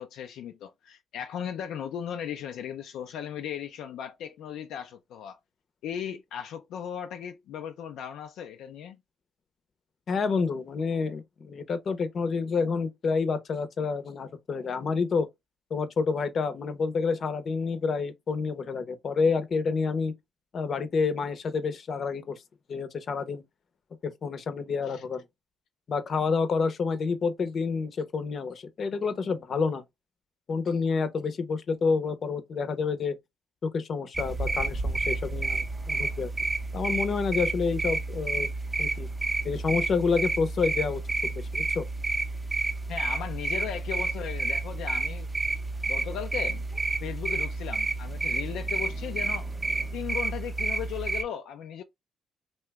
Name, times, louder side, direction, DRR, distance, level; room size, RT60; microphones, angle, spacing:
voice 1, 0.0-5.4 5.8-9.0 24.9-25.0 42.9-45.3 45.9-46.6 47.0-49.5 49.9-51.8, left 9 dB, 85° left, 0.3 m, -37 dB
voice 2, 10.1-15.3 15.7-20.1 20.5-22.4 22.7-23.4 24.0-25.2 25.9-29.8 30.5-33.2 33.6-36.3 36.7-38.5 38.8-39.1 39.4-41.8, left 5 dB, 50° left, 0.6 m, -28 dB
sound 1, 34.1-51.2, right 2 dB, 15° right, 0.5 m, -30 dB
2.8 x 2.1 x 3.4 m
cardioid pair, 90°, 0 cm